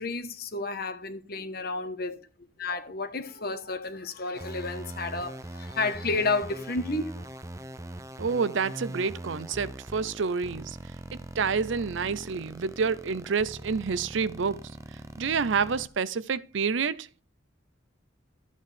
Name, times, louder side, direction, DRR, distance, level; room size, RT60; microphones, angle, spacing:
voice 1, 0.0-2.2 2.6-7.3, left 3 dB, 50° left, 1.2 m, -31 dB
sound 1, 4.3-15.9, right 1 dB, 15° right, 0.5 m, -42 dB
voice 2, 8.2-10.8 11.4-14.7 15.2-17.2, right 5 dB, 70° right, 0.5 m, -28 dB
13.5 x 8.2 x 3.4 m
head